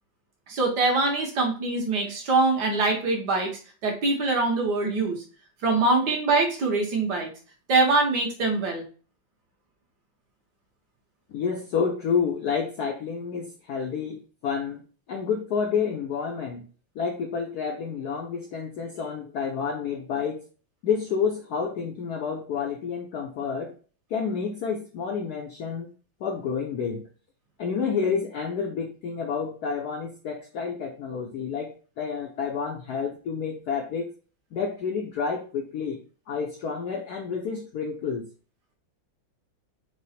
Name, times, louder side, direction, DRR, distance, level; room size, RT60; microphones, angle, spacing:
voice 1, 0.5-3.5 3.8-5.2 5.6-7.3 7.7-8.8, right 3 dB, 60° right, 1 dB, 1.4 m, -23 dB
voice 2, 11.3-14.8 15.1-16.7 16.9-20.4 20.8-23.7 24.1-25.9 26.2-27.0 27.6-34.1 34.5-36.0 36.3-38.2, left 6 dB, 75° left, 2 dB, 0.9 m, -29 dB
4.8 x 2.0 x 4.1 m, 0.37 s
omnidirectional pair, 2.3 m